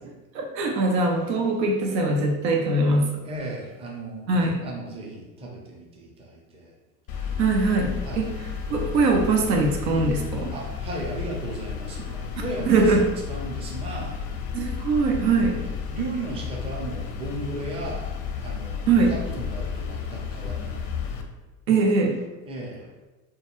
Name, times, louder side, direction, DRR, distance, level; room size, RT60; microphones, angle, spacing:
voice 1, 0.3-3.2 4.3-4.6 7.4-8.4 8.7-10.5 12.7-13.1 14.5-15.6 18.9-19.1 21.7-22.2, right 3 dB, 85° right, 1 dB, 0.6 m, -22 dB
voice 2, 3.2-6.7 7.3-7.4 8.0-8.3 10.5-12.9 13.3-14.2 15.5-20.9 22.4-22.8, right 2 dB, 15° right, -2 dB, 0.5 m, -36 dB
sound 1, 7.1-21.2, left 6 dB, 40° left, 0.4 m, -33 dB
2.2 x 2.2 x 2.9 m, 1.1 s
hypercardioid pair, 90°, 49 cm